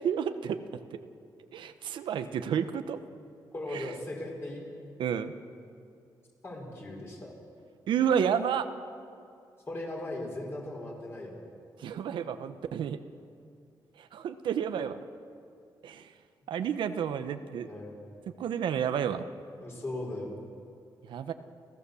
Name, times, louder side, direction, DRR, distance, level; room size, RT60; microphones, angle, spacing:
voice 1, 0.0-0.6 1.5-3.0 3.7-3.9 5.0-5.3 7.9-8.7 11.8-13.0 14.0-15.0 15.8-16.1 16.5-17.7 18.4-19.3 21.1-21.3, right 8 dB, 90° right, 9 dB, 1.0 m, -30 dB
voice 2, 3.5-4.7 6.4-7.3 9.7-11.4 17.6-18.1 19.6-20.4, left 1 dB, 30° left, 0 dB, 5.4 m, -38 dB
30.0 x 15.5 x 7.0 m, 2.4 s
wide cardioid pair, 130°, 8 cm